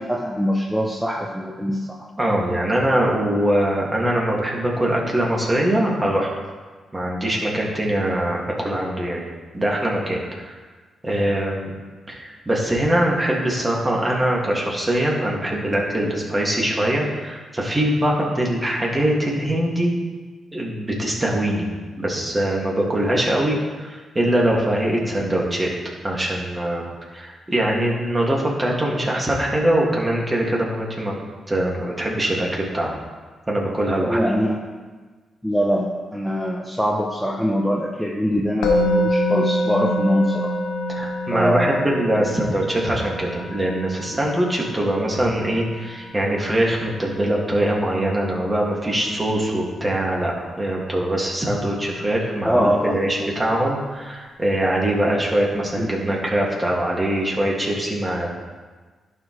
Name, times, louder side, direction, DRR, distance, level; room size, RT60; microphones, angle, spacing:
voice 1, 0.0-1.8 34.1-34.6 35.4-40.5 41.3-41.8 52.4-53.0 55.8-56.0, equal, ahead, -1 dB, 0.9 m, -22 dB
voice 2, 2.2-6.3 6.9-9.2 9.5-10.6 11.0-11.7 12.1-19.9 20.5-21.7 22.0-25.7 26.0-26.9 27.1-31.1 31.5-33.0 33.5-34.2 40.9-58.3, right 1 dB, 20° right, -3 dB, 2.3 m, -22 dB
Musical instrument, 38.6-49.7, left 1 dB, 90° left, 0.9 m, -27 dB
11.5 x 4.9 x 3.3 m, 1.4 s
supercardioid pair, 60°, 0 cm